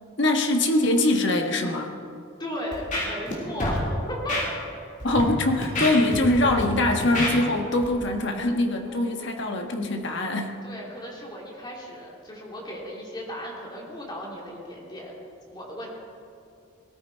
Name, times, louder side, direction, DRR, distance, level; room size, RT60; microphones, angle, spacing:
voice 1, 0.2-1.9 5.0-10.6, left 1 dB, 55° left, 3 dB, 1.4 m, -23 dB
voice 2, 2.4-4.6 8.8-9.0 10.6-15.1 15.5-15.9, equal, 20° left, -2 dB, 2.6 m, -35 dB
Scratching (performance technique), 2.7-3.3 3.6-3.8 4.3-4.4 5.0-5.2 5.6-6.6 7.0-7.3 7.8-7.9, left 1 dB, 40° left, 3.0 m, -27 dB
18.5 x 14.0 x 4.5 m, 2.5 s
head